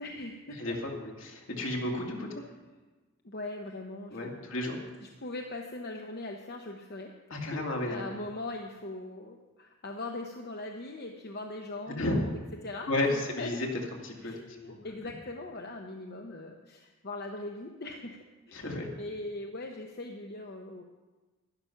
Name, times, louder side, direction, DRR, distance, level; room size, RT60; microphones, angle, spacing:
voice 1, 0.0-0.8 3.2-4.6 5.0-7.1 7.5-13.7 14.2-18.2 18.5-20.8, left 2 dB, 50° left, 3 dB, 0.9 m, -40 dB
voice 2, 0.6-2.3 4.1-4.8 7.3-8.0 12.0-12.2 12.9-13.7 14.0-14.3 14.6-14.8 18.5-18.9, left 1 dB, 70° left, 0 dB, 2.4 m, -32 dB
12.0 x 11.5 x 5.8 m, 1.2 s
head